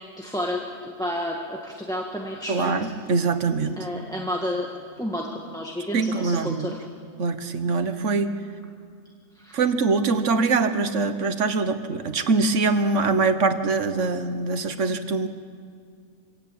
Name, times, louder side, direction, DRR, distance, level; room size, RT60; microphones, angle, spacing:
voice 1, 0.2-2.9 3.8-4.7 5.0-6.8 9.3-9.6, left 1 dB, 5° left, 0 dB, 1.5 m, -31 dB
voice 2, 2.5-3.8 5.9-6.8 7.2-8.3 9.5-15.3, right 4 dB, 65° right, 10 dB, 1.5 m, -23 dB
25.5 x 16.5 x 8.6 m, 2.2 s
omnidirectional pair, 1.4 m